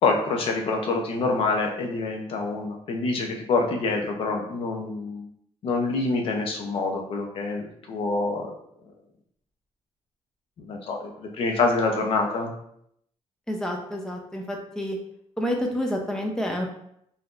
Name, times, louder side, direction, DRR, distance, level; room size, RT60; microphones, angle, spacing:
voice 1, 0.0-5.3 5.6-8.5 10.6-12.5, left 3 dB, 55° left, 2 dB, 0.6 m, -26 dB
voice 2, 13.5-15.0 15.4-16.7, equal, 5° left, 1 dB, 0.5 m, -29 dB
3.6 x 2.7 x 2.4 m, 0.71 s
cardioid pair, 175°, 11 cm